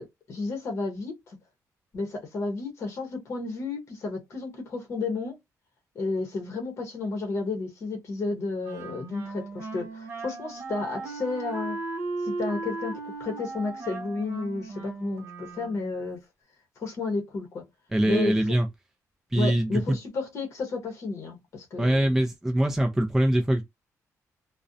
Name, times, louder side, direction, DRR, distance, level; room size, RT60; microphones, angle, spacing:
voice 1, 0.0-1.4 1.9-5.4 5.9-11.8 12.2-16.2 16.8-17.6 18.0-18.5 19.3-22.1, left 3 dB, 50° left, 0.8 m, -32 dB
Wind instrument woodwind instrument, 8.6-16.0, right 3 dB, 40° right, 0.8 m, -36 dB
voice 2, 17.9-18.7 19.3-19.8 21.8-23.6, right 1 dB, 5° right, 0.4 m, -23 dB
2.4 x 2.1 x 2.5 m
wide cardioid pair, 160°, 6 cm